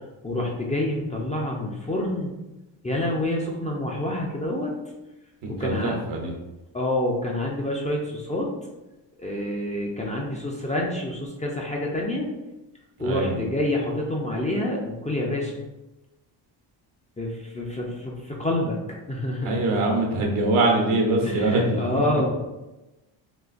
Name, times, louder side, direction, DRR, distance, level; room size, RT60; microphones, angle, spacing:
voice 1, 0.2-2.3 2.8-4.7 5.5-5.9 6.7-8.5 9.2-12.3 13.0-15.5 17.2-18.8 19.1-19.6 21.2-22.3, left 1 dB, 15° left, -2 dB, 0.4 m, -27 dB
voice 2, 5.4-6.4 13.0-13.4 19.4-21.8, right 2 dB, 80° right, 1 dB, 0.9 m, -23 dB
3.8 x 2.4 x 2.4 m, 1.0 s
cardioid pair, 90°, 49 cm